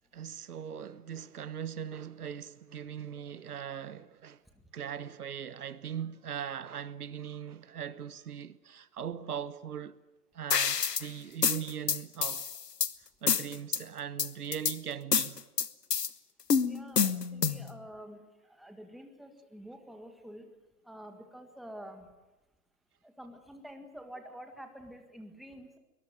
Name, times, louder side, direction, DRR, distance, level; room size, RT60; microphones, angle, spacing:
voice 1, 0.1-4.4 4.7-10.0 10.3-12.5 13.2-15.4, right 8 dB, 70° right, 1.2 m, -40 dB
sound 1, 10.5-11.1 11.4-12.9 13.3-13.8 14.2-14.8 15.1-16.1 16.5-17.7, left 6 dB, 85° left, 1.3 m, -28 dB
voice 2, 16.6-20.5 20.8-22.1 23.0-25.8, equal, ahead, 1.7 m, -48 dB
22.5 x 21.0 x 9.1 m
hypercardioid pair, 135°, 47 cm